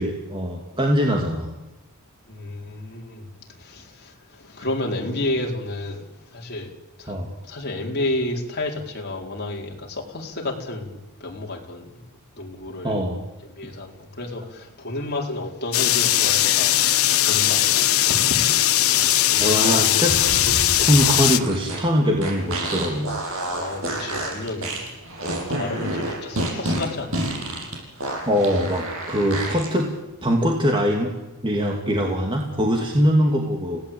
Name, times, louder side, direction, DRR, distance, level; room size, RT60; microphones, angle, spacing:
voice 1, 0.0-1.5 7.1-7.3 12.8-13.2 19.4-20.2 20.8-23.1 28.3-29.9 30.2-31.1 31.4-33.8, equal, 20° right, 0 dB, 2.6 m, -22 dB
voice 2, 2.3-3.3 3.6-6.7 7.0-7.2 7.4-12.0 12.4-13.0 13.6-18.5 18.9-20.0 23.5-24.9 25.3-27.2, left 2 dB, 45° left, 0 dB, 4.4 m, -31 dB
sound 1, 15.7-21.4, left 13 dB, 70° left, 1.1 m, -19 dB
sound 2, 20.1-29.7, right 1 dB, 65° right, 7.7 m, -29 dB
30.0 x 17.5 x 8.9 m, 1.0 s
head